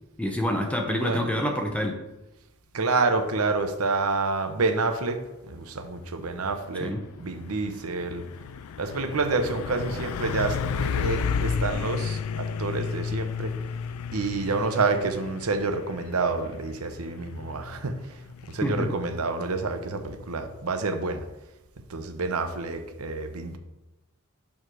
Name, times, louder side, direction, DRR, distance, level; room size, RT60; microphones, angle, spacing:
voice 1, 0.2-2.0 6.8-7.0 18.6-18.9, equal, 5° left, 3 dB, 0.8 m, -27 dB
voice 2, 0.9-1.2 2.7-5.2 5.5-6.9 7.2-8.2 8.8-13.5 14.1-17.9 18.5-21.2 21.9-23.6, right 3 dB, 85° right, 7 dB, 0.8 m, -28 dB
Truck, 6.4-20.7, left 6 dB, 85° left, 0.3 m, -33 dB
7.2 x 3.3 x 6.1 m, 1.0 s
head